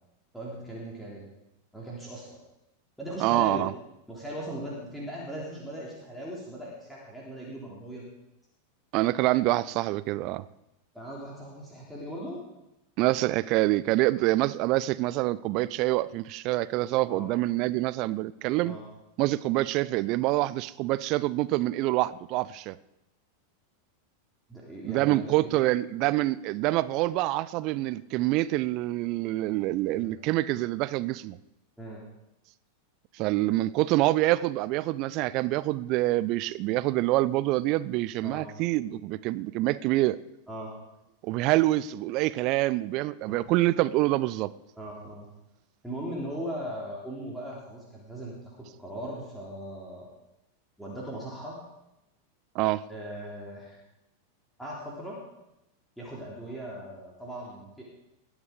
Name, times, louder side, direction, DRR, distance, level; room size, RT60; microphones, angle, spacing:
voice 1, 0.3-1.3 1.7-2.4 3.0-3.6 4.1-8.0 10.9-12.4 17.1-17.3 18.6-18.8 24.5-25.6 30.0-30.1 31.8-32.0 38.2-38.5 40.5-40.7 43.3-43.4 44.8-45.3 45.8-50.1 50.8-51.6 52.9-53.8 54.6-55.2 56.0-57.8, right 1 dB, ahead, -5 dB, 3.5 m, -39 dB
voice 2, 3.2-3.7 8.9-10.4 13.0-18.8 19.2-22.8 24.8-31.4 33.2-40.2 41.2-44.5 52.5-52.8, right 17 dB, 40° right, 17 dB, 0.5 m, -26 dB
21.0 x 8.1 x 5.3 m, 0.90 s
figure-of-eight pair, 90°, 0 cm